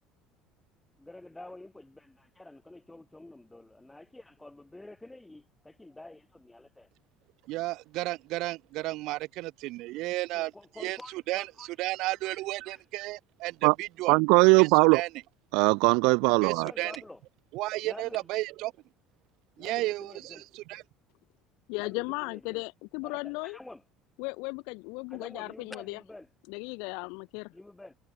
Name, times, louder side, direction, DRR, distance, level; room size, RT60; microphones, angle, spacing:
voice 1, 1.0-6.9 10.3-11.7 12.2-12.4 12.7-12.8 16.4-17.2 17.8-18.3 19.6-20.4 21.8-22.6 23.0-23.8 25.1-26.3 27.5-27.9, left 2 dB, 5° left, 7.9 m, -48 dB
voice 2, 7.5-10.5 10.8-14.1 14.6-15.1 16.4-16.9 17.5-18.7 19.6-20.8, right 19 dB, 60° right, 1.6 m, -33 dB
voice 3, 14.1-15.0 15.5-16.7, right 32 dB, 80° right, 0.3 m, -20 dB
voice 4, 21.7-23.6 24.2-26.0 26.5-27.5, left 32 dB, 80° left, 2.7 m, -36 dB
cardioid pair, 165°, 0 cm